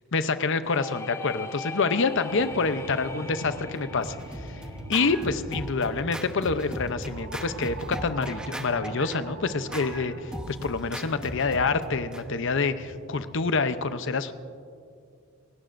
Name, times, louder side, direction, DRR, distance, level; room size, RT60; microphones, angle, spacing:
voice 1, 0.1-4.2 4.5-4.6 4.9-14.3, left 4 dB, 60° left, 11 dB, 0.7 m, -27 dB
sound 1, 0.6-6.3, left 4 dB, 15° left, 0.5 m, -41 dB
sound 2, 2.3-13.4, right 2 dB, 55° right, 0.9 m, -43 dB
Scratching (performance technique), 3.8-12.2, equal, 5° right, 0.9 m, -38 dB
28.0 x 18.0 x 2.6 m, 2.4 s
head